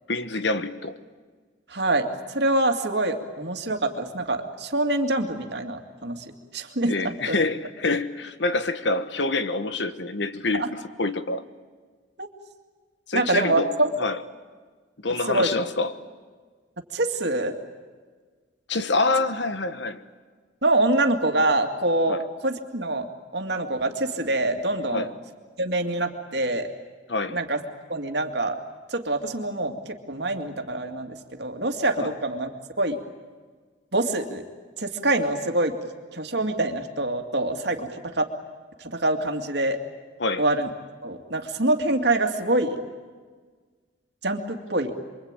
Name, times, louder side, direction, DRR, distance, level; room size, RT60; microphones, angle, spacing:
voice 1, 0.1-1.0 6.9-11.4 13.1-14.2 15.0-16.0 18.7-20.0 22.1-22.2 24.9-25.1 27.1-27.4 32.0-32.1 40.2-40.4, left 3 dB, 70° left, 1.3 m, -26 dB
voice 2, 1.7-6.2 6.5-7.4 10.5-10.7 12.2-12.3 13.1-13.9 15.3-15.5 16.9-17.6 20.6-23.1 23.3-25.1 25.6-26.7 27.3-27.6 27.9-28.6 28.9-32.5 32.8-33.0 33.9-34.4 34.8-35.8 36.1-38.3 38.8-39.8 40.4-40.7 41.0-42.8 44.2-44.9, right 2 dB, 60° right, 2.4 m, -25 dB
27.5 x 23.5 x 9.0 m
head